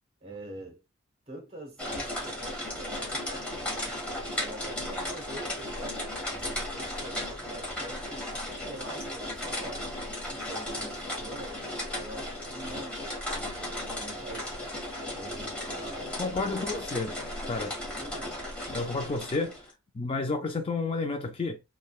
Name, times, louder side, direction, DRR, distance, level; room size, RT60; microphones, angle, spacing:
voice 1, 0.2-0.8 1.3-6.0 6.3-9.9 10.3-14.5 15.1-16.8 17.9-18.4, right 2 dB, 30° right, 1.0 m, -45 dB
sound 1, 1.8-19.7, left 1 dB, 5° left, 1.1 m, -35 dB
voice 2, 16.2-17.1 17.4-17.8 18.7-21.6, left 3 dB, 30° left, 0.4 m, -31 dB
3.5 x 2.2 x 2.3 m
head